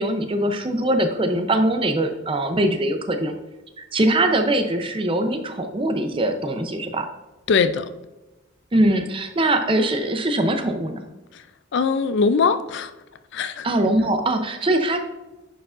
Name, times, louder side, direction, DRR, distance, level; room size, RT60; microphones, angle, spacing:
voice 1, 0.0-3.4 3.8-7.1 8.7-11.0 13.6-15.0, right 1 dB, 25° right, 0.6 m, -22 dB
voice 2, 7.5-7.9 11.3-11.5 11.7-12.9 13.3-13.7, left 5 dB, 60° left, 0.4 m, -21 dB
9.9 x 4.8 x 2.5 m
head